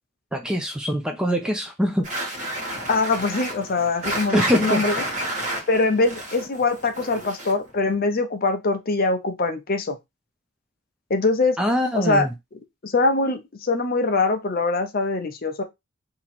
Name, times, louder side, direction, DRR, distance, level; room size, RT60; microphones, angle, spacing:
voice 1, 0.3-2.2 4.3-4.8 11.6-12.3, equal, 5° right, 0.4 m, -23 dB
sound 1, 2.0-7.7, right 1 dB, 35° right, 1.3 m, -30 dB
voice 2, 2.9-5.0 5.7-10.0 11.1-11.6 11.9-12.3 12.8-15.6, left 3 dB, 45° left, 0.6 m, -23 dB
2.9 x 2.9 x 4.1 m
head